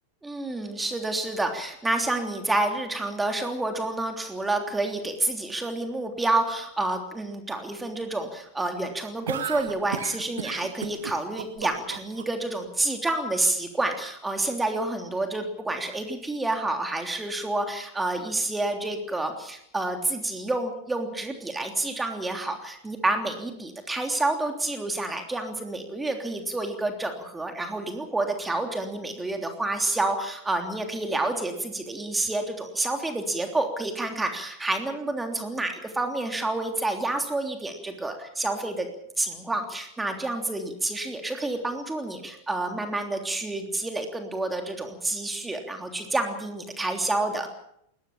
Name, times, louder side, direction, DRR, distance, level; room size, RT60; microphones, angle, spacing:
voice 1, 0.2-38.9 39.2-47.5, right 2 dB, 10° right, 4 dB, 3.2 m, -29 dB
Japanese stereotype coughs and laughs, 9.3-12.2, right 9 dB, 65° right, 1.6 m, -34 dB
21.0 x 20.5 x 7.3 m, 0.73 s
figure-of-eight pair, 90°, 0 cm